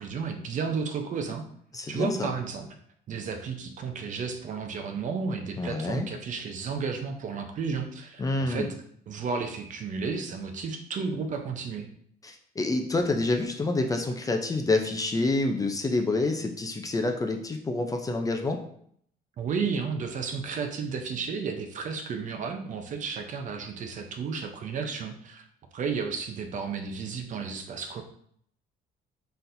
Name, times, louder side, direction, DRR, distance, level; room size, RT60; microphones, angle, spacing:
voice 1, 0.0-1.4 1.9-2.7 3.1-8.7 9.1-11.9 19.4-25.5 25.7-28.0, right 5 dB, 50° right, 5 dB, 0.6 m, -32 dB
voice 2, 1.7-2.3 5.6-6.1 8.2-8.7 12.2-18.6, left 2 dB, 20° left, 4 dB, 0.5 m, -27 dB
4.2 x 3.9 x 2.6 m, 0.65 s
cardioid pair, 110°, 17 cm